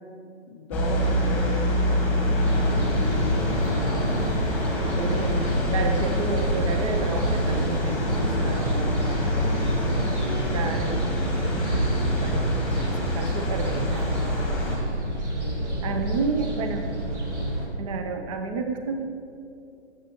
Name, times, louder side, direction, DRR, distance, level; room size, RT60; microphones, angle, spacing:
voice 1, 0.5-2.4 8.9-10.4 14.7-16.1, left 2 dB, 25° left, 2 dB, 0.5 m, -39 dB
sound 1, 0.7-14.8, left 1 dB, 5° left, 1.3 m, -27 dB
sound 2, 2.2-13.5, left 3 dB, 85° left, 0.8 m, -38 dB
sound 3, 2.4-17.7, right 1 dB, 85° right, 2.2 m, -28 dB
voice 2, 4.7-9.0 10.2-11.1 12.2-14.4 15.8-16.9 17.8-19.1, right 4 dB, 30° right, 6 dB, 0.6 m, -31 dB
14.0 x 7.7 x 3.0 m, 2.6 s
figure-of-eight pair, 135°, 34 cm